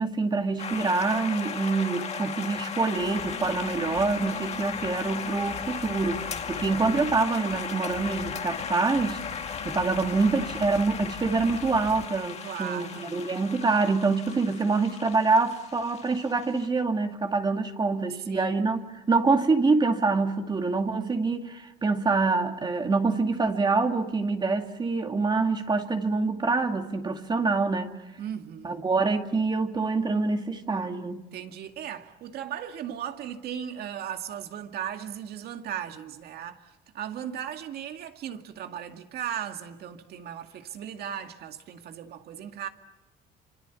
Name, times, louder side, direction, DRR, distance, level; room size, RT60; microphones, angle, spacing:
voice 1, 0.0-9.2 9.6-28.0 28.6-31.2, right 3 dB, 25° right, 2.3 m, -26 dB
sound 1, 0.6-16.7, left 6 dB, 40° left, 2.1 m, -36 dB
sound 2, 2.9-12.1, left 10 dB, 70° left, 1.9 m, -43 dB
voice 2, 6.5-7.0 12.4-13.2 18.3-18.5 28.2-28.9 31.3-42.7, right 9 dB, 70° right, 2.2 m, -37 dB
28.5 x 26.0 x 7.1 m
cardioid pair, 110°, 17 cm